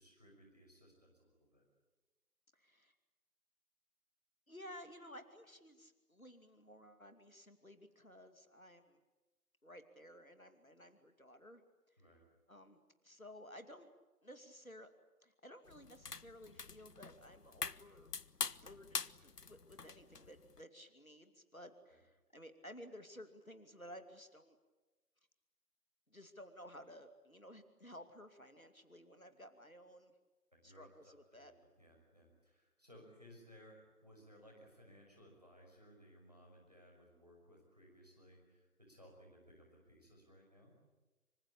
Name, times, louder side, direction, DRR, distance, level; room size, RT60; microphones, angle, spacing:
voice 1, 0.0-1.6 12.0-12.2 18.7-18.8 21.9-22.0 30.5-31.5 31.8-40.8, equal, 25° right, 0 dB, 5.7 m, -62 dB
voice 2, 2.5-2.9 4.5-9.0 9.6-11.6 11.9-12.0 12.5-13.9 14.2-14.9 15.2-18.1 18.6-24.6 26.1-30.1 30.6-31.5, equal, 60° left, 8 dB, 2.7 m, -55 dB
sound 1, 15.7-20.6, left 4 dB, 85° left, 0.9 m, -45 dB
26.0 x 25.0 x 8.6 m, 1.1 s
figure-of-eight pair, 180°, 46 cm